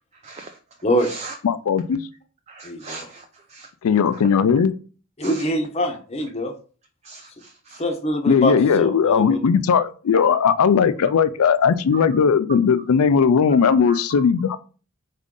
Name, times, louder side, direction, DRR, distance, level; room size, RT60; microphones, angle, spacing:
voice 1, 0.2-0.6 1.0-1.4 2.5-3.7 4.1-4.4 5.2-5.4 7.0-7.8 11.9-12.1 13.6-14.0, right 4 dB, 30° right, 0.3 m, -38 dB
voice 2, 1.4-2.0 3.8-4.7 8.3-14.6, left 6 dB, 85° left, 0.4 m, -18 dB
voice 3, 2.6-3.1 5.2-6.5 7.8-9.4, equal, 30° left, 0.7 m, -24 dB
3.7 x 3.7 x 3.7 m
head